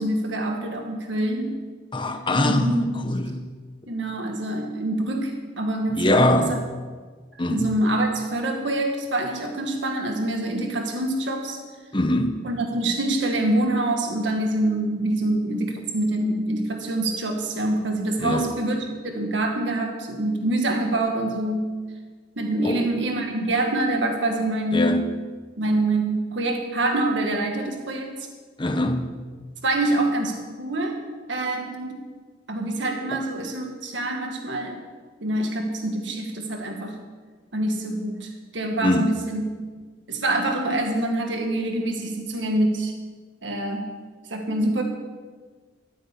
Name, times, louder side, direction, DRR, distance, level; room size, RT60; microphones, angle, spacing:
voice 1, 0.0-1.6 2.4-3.2 3.9-6.6 7.5-11.6 12.4-21.7 22.4-24.9 25.6-28.1 29.6-31.0 31.3-32.0 32.5-34.8 35.2-37.0 37.5-39.4 40.1-42.9 43.4-43.9 44.3-44.8, right 1 dB, 75° right, 3 dB, 1.7 m, -25 dB
voice 2, 1.9-2.8 3.0-3.4 5.9-6.6 7.4-7.7 11.9-12.3 18.2-18.5 22.6-22.9 24.7-25.0 28.6-29.1 33.1-33.2 38.8-39.1, left 1 dB, 25° left, 6 dB, 1.1 m, -22 dB
13.0 x 9.2 x 8.4 m, 1.5 s
head